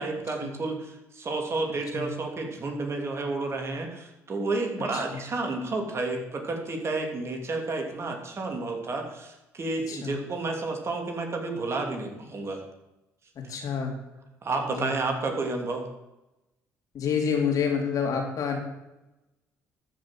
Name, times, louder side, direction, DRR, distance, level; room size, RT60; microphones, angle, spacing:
voice 1, 0.0-12.6 14.4-15.9, right 3 dB, 45° right, 3 dB, 3.0 m, -31 dB
voice 2, 9.9-10.2 13.5-13.9 14.7-15.0 16.9-18.6, left 6 dB, 60° left, 1 dB, 3.3 m, -28 dB
13.5 x 6.1 x 7.6 m, 0.95 s
supercardioid pair, 65°, 7 cm